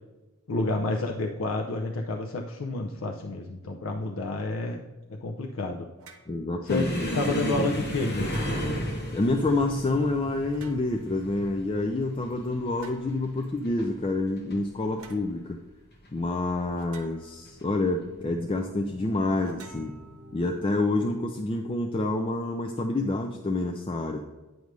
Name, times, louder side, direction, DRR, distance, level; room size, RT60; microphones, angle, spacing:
voice 1, 0.5-5.9 6.6-8.5, left 2 dB, 70° left, 2 dB, 0.6 m, -30 dB
sound 1, 6.0-6.3 8.2-8.8 10.5-11.1 12.8-13.1 15.0-15.3 16.7-17.5 19.4-20.5, right 4 dB, 85° right, 0.9 m, -50 dB
voice 2, 6.3-7.0 9.1-15.6 16.1-19.9 20.3-24.2, left 2 dB, 25° left, 3 dB, 0.3 m, -28 dB
sound 2, 6.7-13.9 14.2-14.6 14.9-15.1 15.9-16.5 17.5-17.6 19.0-19.2, equal, 45° left, 1.3 m, -33 dB
sound 3, 17.7-22.7, right 2 dB, 45° right, 0.9 m, -50 dB
9.3 x 5.1 x 3.2 m, 1.2 s
head